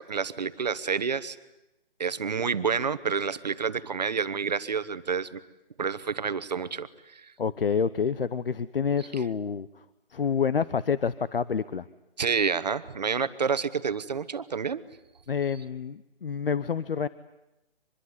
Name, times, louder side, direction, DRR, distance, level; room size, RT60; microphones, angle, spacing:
voice 1, 0.0-1.4 2.0-5.4 5.8-7.3 12.2-14.8, right 6 dB, 45° right, 13 dB, 1.1 m, -29 dB
voice 2, 7.4-9.7 10.1-11.9 15.3-17.1, left 6 dB, 70° left, 16 dB, 0.9 m, -28 dB
25.0 x 21.5 x 9.7 m, 0.95 s
hypercardioid pair, 175°, 30 cm